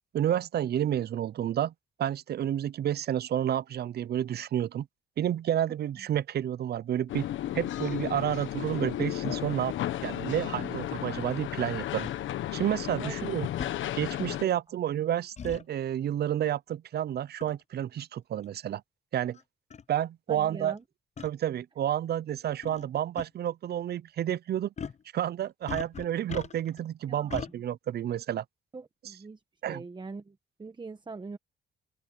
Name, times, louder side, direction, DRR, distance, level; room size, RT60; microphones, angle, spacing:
voice 1, 0.1-1.7 2.0-4.9 5.2-7.3 7.5-9.7 10.0-12.1 12.5-13.5 13.9-18.8 19.1-19.4 19.9-20.7 21.2-24.7 25.1-28.4 29.6-29.8, right 11 dB, 55° right, 0.6 m, -30 dB
sound 1, 7.1-14.4, left 12 dB, 80° left, 1.3 m, -34 dB
sound 2, 12.0-12.2 13.6-13.8 15.4-15.6 17.4-17.6 18.4-18.5 19.3-19.4 19.7-19.8 21.2-21.3 22.6-22.9 23.2-23.3 24.8-25.0 25.7-26.8 27.3-27.5, left 7 dB, 35° left, 0.7 m, -39 dB
voice 2, 20.3-20.8 27.1-27.5 28.7-29.4 29.7-31.4, right 4 dB, 25° right, 1.1 m, -43 dB
open air
cardioid pair, 90°, 20 cm